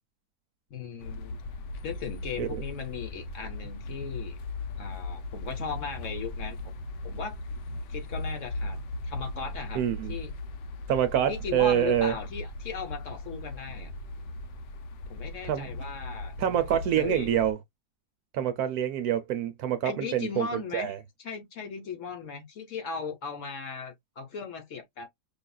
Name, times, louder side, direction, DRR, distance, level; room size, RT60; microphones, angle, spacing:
voice 1, 0.7-1.4 1.8-4.4 4.8-6.6 7.0-7.4 7.9-8.8 9.0-9.8 10.1-10.3 11.3-13.9 15.1-16.4 16.7-17.3 19.8-25.1, left 5 dB, 55° left, 1.0 m, -37 dB
sound 1, 1.0-17.5, left 2 dB, 80° left, 1.3 m, -38 dB
voice 2, 9.7-10.1 10.9-12.1 15.5-15.7 16.4-17.6 18.3-21.0, right 10 dB, 70° right, 1.0 m, -26 dB
5.3 x 2.4 x 2.2 m
omnidirectional pair, 1.8 m